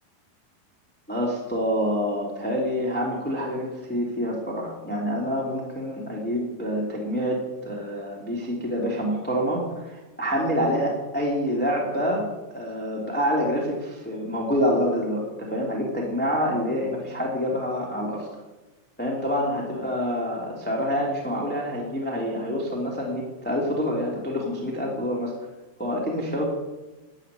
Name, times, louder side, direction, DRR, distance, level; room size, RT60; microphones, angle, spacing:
voice 1, 1.1-18.3 19.0-25.3 25.8-26.4, equal, 5° left, -3 dB, 2.1 m, -27 dB
13.5 x 9.8 x 9.8 m, 1.1 s
omnidirectional pair, 5.3 m